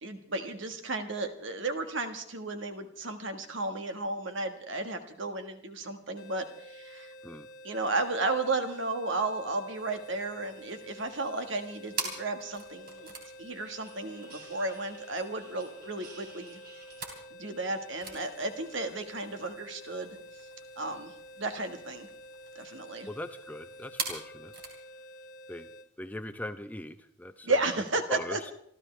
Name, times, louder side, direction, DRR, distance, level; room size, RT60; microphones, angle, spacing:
voice 1, 0.0-7.1 7.6-13.1 13.4-16.6 17.3-20.2 20.8-22.1 22.5-23.1 27.4-28.5, right 2 dB, 65° right, 7 dB, 1.5 m, -33 dB
sound 1, 6.2-25.9, equal, 45° left, 1.6 m, -49 dB
sound 2, 9.7-24.8, right 4 dB, 45° right, 3.2 m, -45 dB
voice 2, 23.1-24.5 25.5-25.7 26.0-27.6 28.1-28.5, left 1 dB, 10° left, 10 dB, 0.7 m, -40 dB
27.0 x 13.5 x 3.3 m, 0.70 s
head